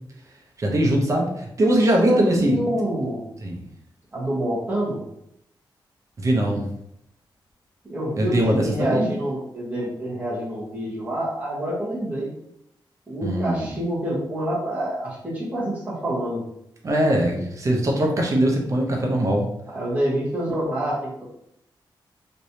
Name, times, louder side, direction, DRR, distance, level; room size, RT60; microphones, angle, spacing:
voice 1, 0.6-2.6 3.4-3.6 6.2-6.7 8.2-9.1 13.2-13.7 16.8-19.5, right 1 dB, 40° right, 0 dB, 0.7 m, -21 dB
voice 2, 2.0-3.3 4.1-5.0 7.8-12.3 13.1-16.4 19.7-21.2, right 1 dB, 15° right, -7 dB, 1.3 m, -26 dB
3.3 x 3.1 x 2.8 m, 0.77 s
wide cardioid pair, 165°, 9 cm